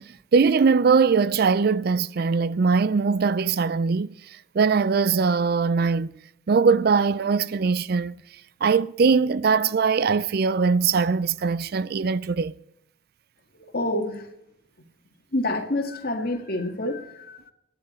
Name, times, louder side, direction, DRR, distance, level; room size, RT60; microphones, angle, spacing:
voice 1, 0.0-6.1 6.5-8.2 8.6-12.5, right 5 dB, 55° right, 0.4 m, -21 dB
voice 2, 13.7-14.3 14.8-14.9 15.3-17.4, left 1 dB, 55° left, 1.7 m, -27 dB
25.0 x 9.9 x 4.2 m
head